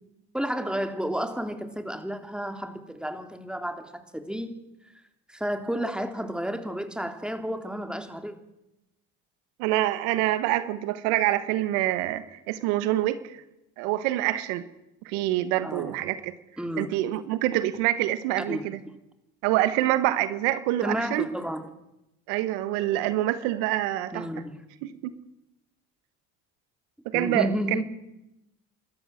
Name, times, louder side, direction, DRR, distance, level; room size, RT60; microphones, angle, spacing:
voice 1, 0.3-4.6 5.3-8.3 15.6-16.0 16.6-16.9 18.5-18.6 20.8-21.7 24.1-24.6 27.1-27.8, equal, ahead, 6 dB, 3.3 m, -31 dB
voice 2, 9.6-13.4 13.8-14.6 15.0-16.3 16.8-18.8 19.4-21.3 22.3-24.3 24.8-25.2 27.0-27.8, right 14 dB, 80° right, 13 dB, 1.3 m, -26 dB
29.5 x 13.0 x 7.8 m, 0.91 s
hypercardioid pair, 65°, 42 cm